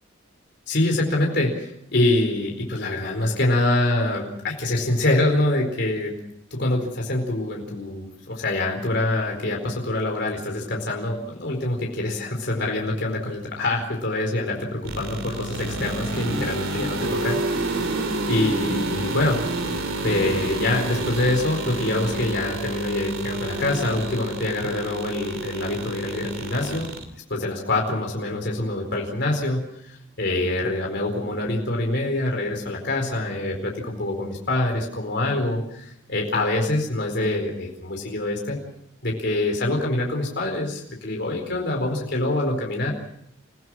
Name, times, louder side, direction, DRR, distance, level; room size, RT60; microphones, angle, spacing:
voice 1, 0.7-6.1 6.5-19.4 20.0-26.9 27.3-38.6 39.0-42.9, left 2 dB, 55° left, 0 dB, 4.4 m, -25 dB
sound 1, 14.8-27.0, right 2 dB, 80° right, 2.8 m, -29 dB
28.5 x 16.5 x 6.2 m, 0.74 s
head